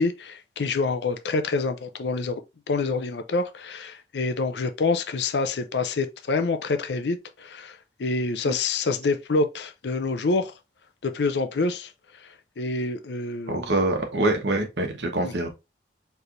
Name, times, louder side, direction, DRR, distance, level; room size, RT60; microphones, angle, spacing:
voice 1, 0.0-2.4 2.7-10.5 11.0-11.9 12.6-13.6 15.2-15.3, left 3 dB, 75° left, 0.5 m, -26 dB
voice 2, 13.5-15.5, right 2 dB, 75° right, 1.1 m, -25 dB
4.5 x 3.3 x 2.5 m
head